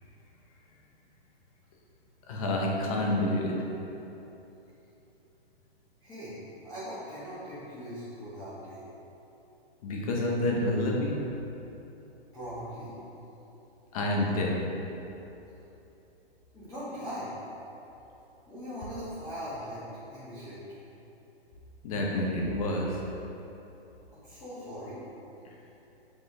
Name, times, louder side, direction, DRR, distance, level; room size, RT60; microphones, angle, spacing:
voice 1, 2.3-3.5 9.8-11.1 13.9-14.6 21.8-23.0, left 1 dB, 35° left, -1 dB, 0.9 m, -28 dB
voice 2, 6.0-6.4 6.6-8.8 12.3-12.9 16.5-17.3 18.5-19.8 20.1-20.6 24.1-25.0, equal, 10° left, -14 dB, 1.1 m, -40 dB
6.8 x 4.4 x 3.5 m, 3.0 s
hypercardioid pair, 160°, 32 cm